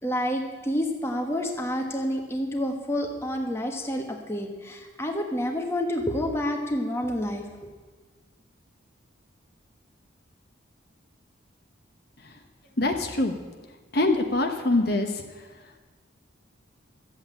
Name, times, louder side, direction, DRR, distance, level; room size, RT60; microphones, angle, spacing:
voice 1, 0.0-7.7, equal, 15° left, 2 dB, 1.4 m, -29 dB
voice 2, 12.8-13.3 13.9-15.2, left 2 dB, 50° left, 4 dB, 1.1 m, -24 dB
13.0 x 8.1 x 8.9 m, 1.3 s
head